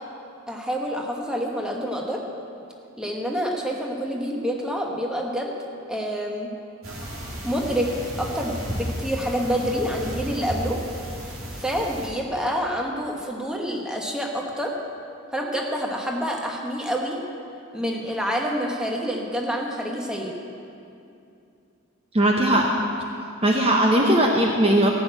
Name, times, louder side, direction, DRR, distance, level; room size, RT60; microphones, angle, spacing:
voice 1, 0.5-2.2 3.0-5.5 5.9-6.5 7.4-7.9 8.2-10.8 11.6-14.7 15.3-17.2 17.7-20.3, equal, 5° right, -1 dB, 1.2 m, -27 dB
sound 1, 6.8-12.1, equal, 90° right, 2.9 m, -33 dB
voice 2, 22.1-22.7 23.4-24.9, right 1 dB, 30° right, 0 dB, 0.8 m, -19 dB
14.0 x 6.4 x 8.8 m, 2.6 s
head